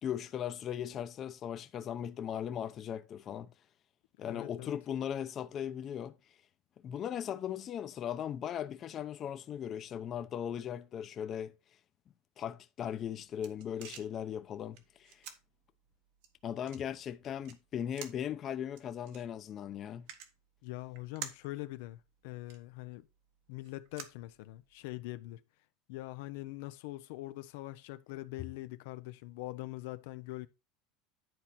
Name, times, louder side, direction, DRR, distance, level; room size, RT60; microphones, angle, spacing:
voice 1, 0.0-3.5 4.2-6.1 6.8-11.5 12.4-15.2 16.4-20.1, left 9 dB, 35° left, 0.7 m, -38 dB
voice 2, 4.2-4.8 20.6-23.1 23.5-25.4 25.9-30.5, left 18 dB, 75° left, 0.6 m, -43 dB
sound 1, 12.9-24.9, right 9 dB, 70° right, 1.6 m, -52 dB
10.5 x 4.5 x 4.2 m
supercardioid pair, 135°, 0 cm